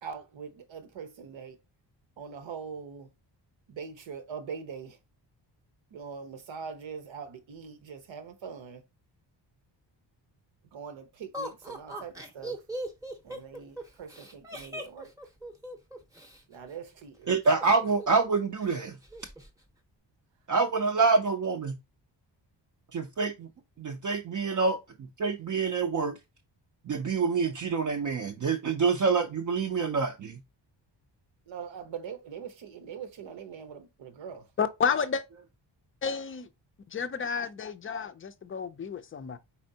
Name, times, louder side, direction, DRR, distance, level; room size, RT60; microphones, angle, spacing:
voice 1, 0.0-1.6 2.2-3.1 3.7-5.0 5.9-8.8 10.7-12.6 13.2-15.1 16.5-17.3 31.5-34.5, right 6 dB, 90° right, 0.9 m, -42 dB
Laughter, 11.3-16.4 17.4-18.3 18.6-18.7 19.0-19.5, right 1 dB, 10° right, 0.7 m, -39 dB
voice 2, 17.3-19.0 20.5-21.7 22.9-23.5 23.8-24.8 25.2-26.1 26.9-30.3, right 4 dB, 45° right, 0.5 m, -26 dB
voice 3, 34.6-35.3 36.0-36.5 36.9-39.4, left 6 dB, 30° left, 0.4 m, -31 dB
4.4 x 4.3 x 2.7 m
wide cardioid pair, 160°, 44 cm